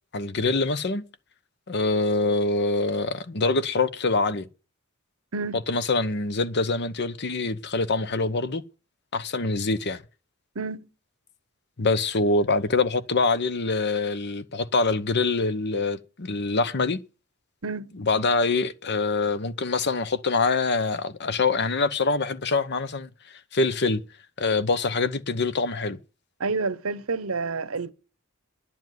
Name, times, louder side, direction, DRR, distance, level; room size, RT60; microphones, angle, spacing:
voice 1, 0.1-1.0 1.7-4.5 5.7-8.6 9.1-10.0 11.8-17.0 18.0-23.1 23.5-24.0 24.4-26.0, left 3 dB, 55° left, 1.0 m, -25 dB
voice 2, 10.5-10.9 17.6-17.9 26.4-27.9, right 4 dB, 80° right, 1.0 m, -29 dB
11.0 x 7.2 x 9.3 m
head